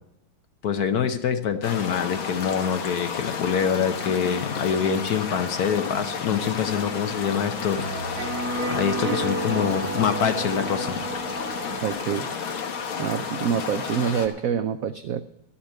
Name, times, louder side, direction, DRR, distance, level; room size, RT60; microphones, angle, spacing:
voice 1, 0.6-8.4 8.7-11.0, left 7 dB, 60° left, 8 dB, 1.2 m, -25 dB
sound 1, 1.6-14.3, left 6 dB, 80° left, 2.2 m, -32 dB
sound 2, 6.3-11.9, right 2 dB, 45° right, 1.9 m, -32 dB
voice 2, 11.8-12.3 13.0-15.2, right 8 dB, 85° right, 11 dB, 0.7 m, -26 dB
13.0 x 7.2 x 8.5 m, 0.79 s
omnidirectional pair, 2.2 m